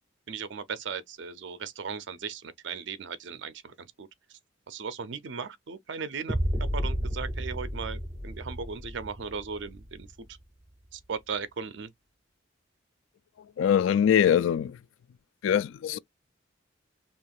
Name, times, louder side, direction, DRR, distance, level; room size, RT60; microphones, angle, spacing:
voice 1, 0.3-4.1 4.7-6.4 6.7-10.3 10.9-11.9, right 5 dB, 65° right, 0.5 m, -37 dB
sound 1, 6.3-10.3, equal, 35° right, 1.3 m, -32 dB
voice 2, 13.4-14.8 15.4-16.0, left 9 dB, 75° left, 0.3 m, -23 dB
4.4 x 2.9 x 2.4 m
head